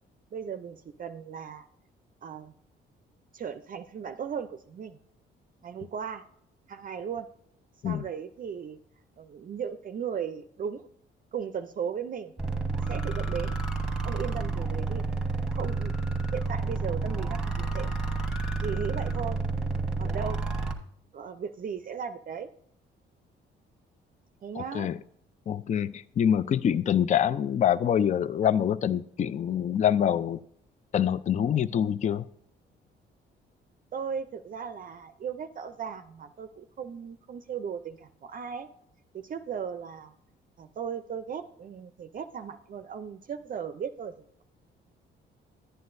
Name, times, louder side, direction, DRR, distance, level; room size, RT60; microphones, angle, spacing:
voice 1, 0.3-1.7 2.2-2.5 3.3-5.0 5.6-6.3 6.7-7.3 7.8-8.8 9.2-10.9 11.3-12.3 12.9-13.6 14.0-15.0 15.5-17.9 18.6-19.4 20.0-20.4 21.1-22.5 24.4-24.9 33.9-38.7 39.1-40.1 40.6-44.2, right 7 dB, 45° right, 0.5 m, -36 dB
sound 1, 12.4-20.7, right 3 dB, 5° right, 1.4 m, -30 dB
voice 2, 24.6-25.0 25.5-30.4 30.9-32.3, left 9 dB, 35° left, 0.4 m, -25 dB
11.0 x 9.4 x 2.6 m
cardioid pair, 90°, 20 cm